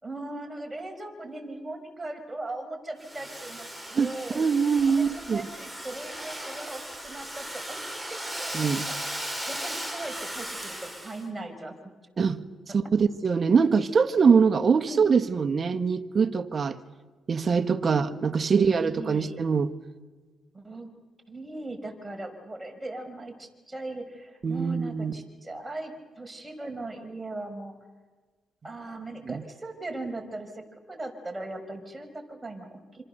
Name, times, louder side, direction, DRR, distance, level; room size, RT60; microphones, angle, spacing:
voice 1, 0.0-3.7 4.0-4.4 4.9-8.5 9.5-11.9 14.2-14.4 14.9-15.1 17.8-18.1 18.5-19.4 20.5-20.9 21.3-27.8 28.6-33.0, right 2 dB, 15° right, 5.4 m, -39 dB
Domestic sounds home sounds, 3.0-11.2, right 1 dB, ahead, 5.3 m, -37 dB
voice 2, 4.3-5.4 8.5-8.9 12.2-12.4 12.7-16.8 17.3-19.7 24.4-25.1 29.3-29.4, right 5 dB, 45° right, 1.5 m, -23 dB
26.5 x 26.5 x 6.8 m
supercardioid pair, 70°, 0 cm